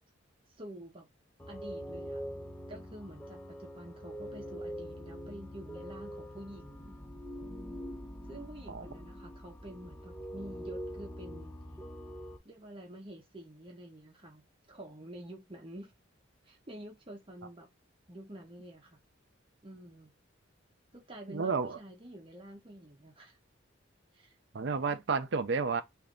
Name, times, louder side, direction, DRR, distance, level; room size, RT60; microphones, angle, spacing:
voice 1, 0.6-1.1 1.5-2.2 2.7-7.0 8.3-11.6 12.4-15.9 16.4-17.7 18.1-19.0 19.6-20.1 20.9-23.4 24.1-24.3, right 1 dB, 25° right, 0.8 m, -48 dB
sound 1, 1.4-12.4, equal, 10° left, 0.5 m, -44 dB
voice 2, 21.3-21.8 24.5-25.8, right 4 dB, 60° right, 0.5 m, -31 dB
3.3 x 2.5 x 3.7 m
head